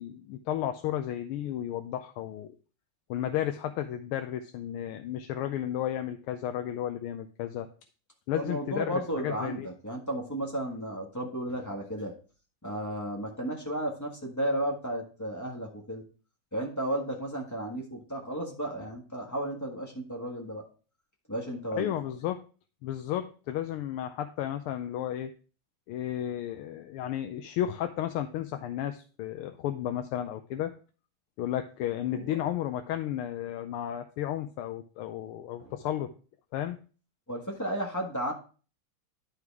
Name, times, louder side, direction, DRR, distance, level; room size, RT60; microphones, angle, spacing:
voice 1, 0.0-2.5 3.1-7.7 8.3-9.7 21.7-22.4 22.8-25.3 25.9-30.7 31.4-36.1 36.5-36.8, left 11 dB, 85° left, 7 dB, 1.5 m, -33 dB
voice 2, 8.3-12.1 12.6-16.0 16.5-20.7 21.3-21.9 32.1-32.3 35.6-35.7 37.3-38.3, right 1 dB, 10° left, 0 dB, 1.3 m, -33 dB
10.5 x 4.8 x 3.5 m, 0.37 s
omnidirectional pair, 2.4 m